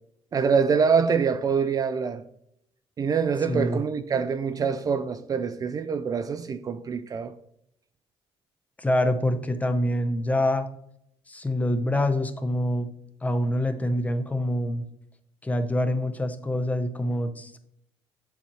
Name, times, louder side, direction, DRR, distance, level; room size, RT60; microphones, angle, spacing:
voice 1, 0.3-2.2 3.0-7.3, right 6 dB, 35° right, 0.4 m, -25 dB
voice 2, 3.5-3.8 8.8-10.6 11.3-12.9 13.2-14.8 15.4-17.6, left 1 dB, 15° left, 0.7 m, -25 dB
7.0 x 7.0 x 3.0 m
cardioid pair, 110°, 10 cm